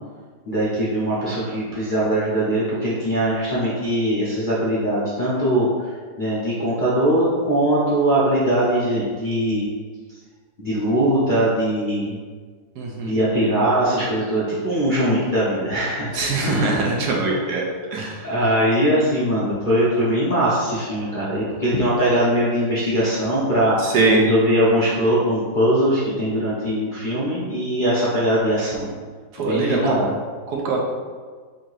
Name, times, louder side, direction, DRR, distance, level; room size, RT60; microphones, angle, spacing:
voice 1, 0.5-5.7 6.2-9.7 10.6-12.2 13.0-16.9 17.3-17.4 18.2-28.9 29.4-30.1, right 1 dB, 45° left, -10 dB, 0.7 m, -21 dB
voice 2, 12.8-13.2 16.1-17.6 17.9-18.3 23.8-24.2 29.3-30.0 30.5-30.8, right 3 dB, 70° right, -1 dB, 1.1 m, -22 dB
3.7 x 2.8 x 4.6 m, 1.5 s
omnidirectional pair, 1.9 m